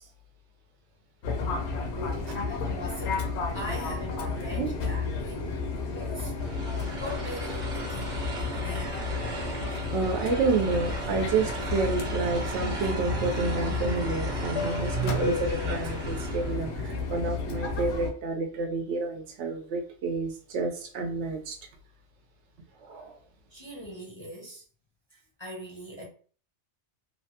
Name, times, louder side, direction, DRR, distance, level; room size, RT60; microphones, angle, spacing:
Fixed-wing aircraft airplane, 1.2-18.1, left 4 dB, 75° left, 0.9 m, -32 dB
voice 1, 2.0-5.6 5.9-6.3 6.7-9.0 23.5-24.6 25.1-26.1, left 1 dB, 35° left, 0.4 m, -41 dB
sound 1, 6.4-16.7, right 3 dB, 50° right, 0.9 m, -38 dB
voice 2, 9.7-21.6 22.8-23.2, right 4 dB, 90° right, 0.9 m, -29 dB
2.8 x 2.1 x 2.7 m
omnidirectional pair, 1.2 m